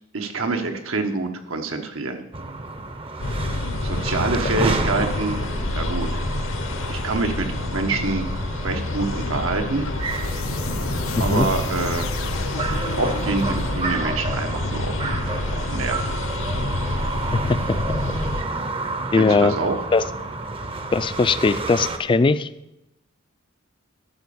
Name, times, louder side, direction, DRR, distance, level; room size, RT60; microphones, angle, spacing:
voice 1, 0.1-2.2 3.8-5.4 5.7-6.1 6.9-8.3 8.6-9.9 11.2-12.1 13.0-15.1 15.5-16.1 19.1-19.8, right 3 dB, 90° right, 5 dB, 1.2 m, -26 dB
sound 1, 2.3-22.0, right 3 dB, 30° right, 0.6 m, -30 dB
sound 2, 3.2-18.4, left 2 dB, 70° left, 0.9 m, -28 dB
sound 3, 4.1-4.7 5.6-6.2 7.1-7.7 8.6-9.2 9.8-14.2, left 5 dB, 85° left, 0.6 m, -35 dB
voice 2, 11.2-11.5 17.3-17.6 19.1-19.6 19.9-20.0 20.9-22.5, left 4 dB, 25° left, 15 dB, 0.3 m, -19 dB
12.5 x 4.3 x 7.0 m, 0.88 s
head